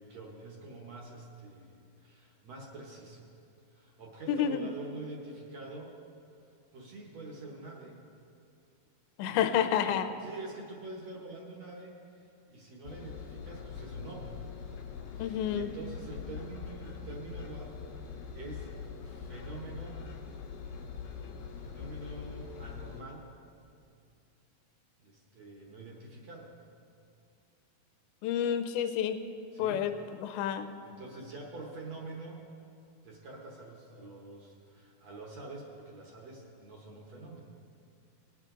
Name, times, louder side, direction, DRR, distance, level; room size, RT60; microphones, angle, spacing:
voice 1, 0.0-3.3 3.7-6.0 6.7-8.0 9.3-9.4 9.8-9.9 10.2-14.4 15.1-18.7 19.0-20.1 21.6-23.3 25.0-26.5 29.5-29.8 30.8-32.4 33.0-37.5, right 2 dB, 60° right, -1 dB, 1.9 m, -46 dB
voice 2, 4.3-4.7 9.2-10.1 15.2-15.7 28.2-29.2 29.6-29.9 30.2-30.7, left 9 dB, 85° left, 9 dB, 2.5 m, -29 dB
Engine, 12.9-23.0, left 6 dB, 70° left, 2.7 m, -43 dB
20.0 x 7.9 x 3.8 m, 2.5 s
omnidirectional pair, 4.4 m